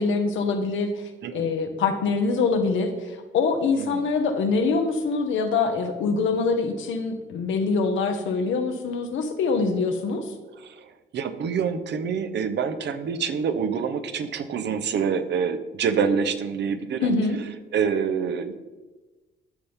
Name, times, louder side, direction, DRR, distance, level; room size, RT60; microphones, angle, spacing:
voice 1, 0.0-10.3 17.0-17.4, left 4 dB, 75° left, 6 dB, 1.2 m, -24 dB
voice 2, 10.6-17.1 17.7-18.5, right 6 dB, 60° right, 10 dB, 0.8 m, -26 dB
12.5 x 5.5 x 3.5 m, 1.2 s
cardioid pair, 90°, 20 cm